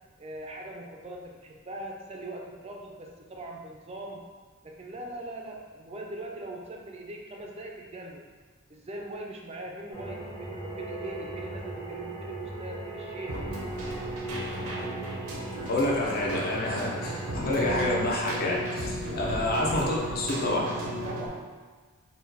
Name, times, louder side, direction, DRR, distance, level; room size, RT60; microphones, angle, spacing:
voice 1, 0.2-4.3 4.6-8.2 8.7-13.4 19.0-19.2 21.1-21.5, right 1 dB, 30° right, 1 dB, 0.4 m, -41 dB
sound 1, 9.9-18.0, right 2 dB, 70° left, 1.1 m, -39 dB
Keyboard (musical), 13.3-21.3, equal, 90° right, 0.7 m, -35 dB
voice 2, 15.6-20.7, left 1 dB, 45° left, -3 dB, 0.7 m, -28 dB
4.1 x 2.2 x 4.0 m, 1.4 s
head